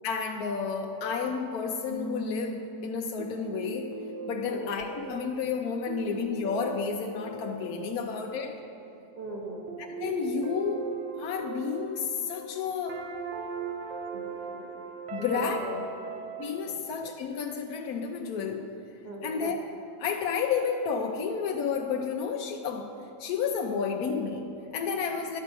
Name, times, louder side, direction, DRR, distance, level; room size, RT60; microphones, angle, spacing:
voice 1, 0.0-3.9 4.3-8.6 9.8-10.9 11.2-13.0 15.1-15.6 16.4-18.7 19.2-19.5 20.0-22.9 23.2-25.4, left 6 dB, 70° left, 2 dB, 1.1 m, -31 dB
sound 1, 1.9-16.4, right 4 dB, 60° right, 0.8 m, -39 dB
voice 2, 9.1-9.7 14.1-14.7 15.2-15.9 16.6-16.8 19.0-19.4, right 1 dB, 25° right, -1 dB, 1.5 m, -39 dB
12.0 x 4.7 x 8.2 m, 2.9 s
omnidirectional pair, 1.8 m